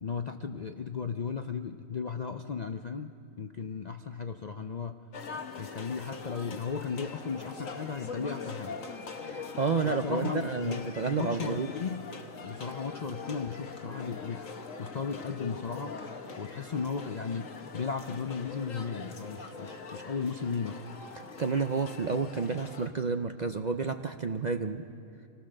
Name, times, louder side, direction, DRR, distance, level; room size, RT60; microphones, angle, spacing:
voice 1, 0.0-5.0 5.5-8.8 9.8-12.1 12.4-14.4 14.8-16.0 16.4-20.8, left 5 dB, 50° left, 7 dB, 0.5 m, -35 dB
sound 1, 5.1-22.9, left 4 dB, 70° left, 1.6 m, -42 dB
voice 2, 9.2-11.7 21.4-24.8, right 5 dB, 50° right, 7 dB, 0.5 m, -30 dB
26.0 x 18.5 x 6.5 m, 2.7 s
omnidirectional pair, 1.4 m